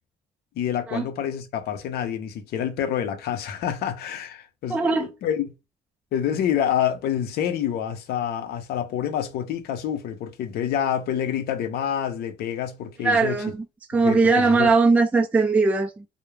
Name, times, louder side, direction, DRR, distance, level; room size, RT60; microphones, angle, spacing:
voice 1, 0.6-5.5 6.1-13.4 13.9-14.7, left 9 dB, 70° left, 0.6 m, -27 dB
voice 2, 4.7-5.1 13.0-16.0, right 4 dB, 10° right, 0.3 m, -20 dB
2.3 x 2.1 x 3.1 m
cardioid pair, 110°, 17 cm